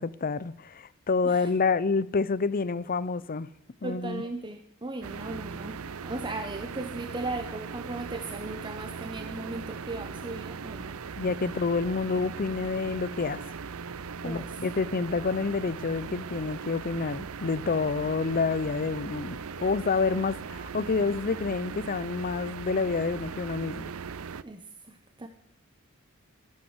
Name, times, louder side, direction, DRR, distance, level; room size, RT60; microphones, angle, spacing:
voice 1, 0.0-3.5 3.8-4.2 11.2-13.4 14.2-23.9, left 4 dB, 40° left, 0.6 m, -28 dB
voice 2, 3.8-11.0 14.2-14.6 24.4-25.3, right 2 dB, 20° right, 0.8 m, -37 dB
sound 1, 5.0-24.4, right 5 dB, 65° right, 0.6 m, -39 dB
12.5 x 12.5 x 8.0 m
head